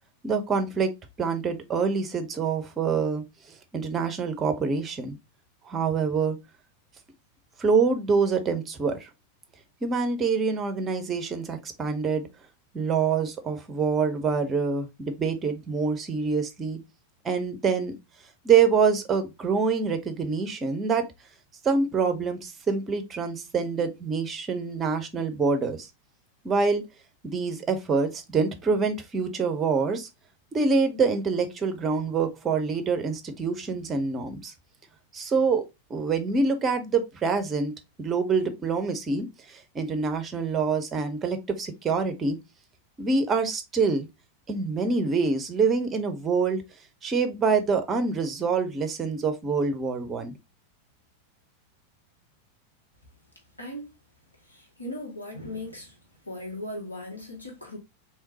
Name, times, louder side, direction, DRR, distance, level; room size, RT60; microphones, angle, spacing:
voice 1, 0.2-0.9 1.2-3.2 3.7-5.2 5.7-6.4 7.6-9.1 9.8-12.3 12.7-16.8 17.2-17.9 18.4-21.1 21.6-25.9 26.4-26.8 27.2-30.1 30.5-34.5 35.1-35.6 35.9-37.7 38.0-42.4 43.0-44.1 44.5-46.6 47.0-50.4, right 5 dB, 20° right, 0.8 m, -26 dB
voice 2, 53.6-53.9 54.4-56.0 56.2-57.8, left 1 dB, 80° left, 1.4 m, -38 dB
3.6 x 3.0 x 2.8 m
figure-of-eight pair, 90°, 0 cm